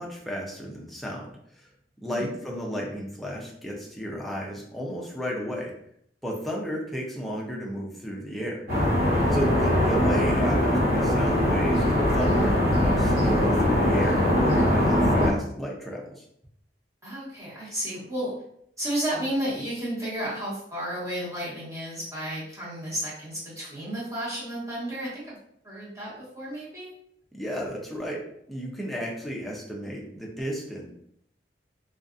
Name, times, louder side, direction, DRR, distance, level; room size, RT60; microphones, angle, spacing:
voice 1, 0.0-1.3 2.0-5.7 6.2-8.6 9.3-16.2 27.3-28.2 28.5-30.9, equal, ahead, -3 dB, 0.5 m, -33 dB
sound 1, 8.7-15.3, left 1 dB, 55° right, 1.2 m, -22 dB
voice 2, 17.0-18.3 18.8-25.2 25.6-26.9, right 1 dB, 20° right, -9 dB, 1.2 m, -32 dB
2.5 x 2.3 x 2.5 m, 0.70 s
head